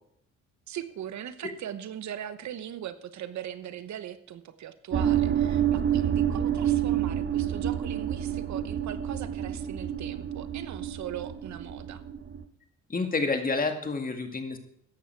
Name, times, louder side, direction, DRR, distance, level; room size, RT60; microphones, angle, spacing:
voice 1, 0.7-12.0, right 10 dB, 65° right, 12 dB, 1.0 m, -40 dB
sound 1, 4.9-12.4, right 10 dB, 35° right, 1.1 m, -28 dB
voice 2, 12.9-14.6, left 3 dB, 30° left, 5 dB, 2.0 m, -29 dB
14.0 x 10.5 x 4.6 m, 0.71 s
cardioid pair, 90°, 30 cm